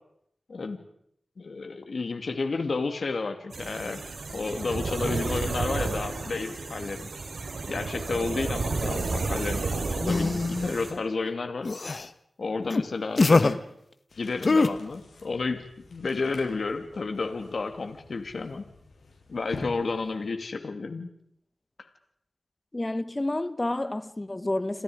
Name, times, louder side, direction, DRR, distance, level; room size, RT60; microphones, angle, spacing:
voice 1, 1.4-4.0 4.3-7.1 7.7-11.7 12.4-13.6 14.2-15.6 15.9-18.6 19.3-21.1, left 4 dB, 70° left, 2.5 m, -31 dB
sound 1, 3.5-10.9, right 3 dB, 80° right, 4.9 m, -32 dB
sound 2, 10.1-10.7 11.6-12.1 12.7-12.8 13.2-13.5 14.4-14.7, left 3 dB, 55° left, 1.4 m, -22 dB
sound 3, 14.1-20.4, left 3 dB, 90° left, 6.9 m, -47 dB
voice 2, 22.7-24.8, left 2 dB, 30° left, 1.4 m, -29 dB
30.0 x 27.0 x 5.1 m
cardioid pair, 55°, 0 cm